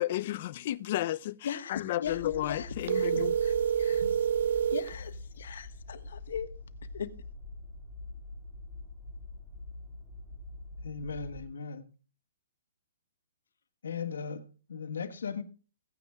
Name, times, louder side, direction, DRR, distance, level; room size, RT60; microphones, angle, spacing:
voice 1, 0.0-3.4, left 14 dB, 45° left, 0.5 m, -32 dB
voice 2, 1.4-3.1 3.4-4.0 4.7-6.5 6.9-7.1, left 8 dB, 70° left, 1.4 m, -39 dB
sound 1, 2.0-11.5, left 2 dB, 15° right, 6.3 m, -45 dB
sound 2, 2.8-4.9, right 8 dB, 65° right, 1.1 m, -27 dB
voice 3, 10.8-11.9 13.8-15.4, left 5 dB, 85° left, 1.5 m, -37 dB
16.5 x 9.5 x 2.4 m
hypercardioid pair, 155°, 0 cm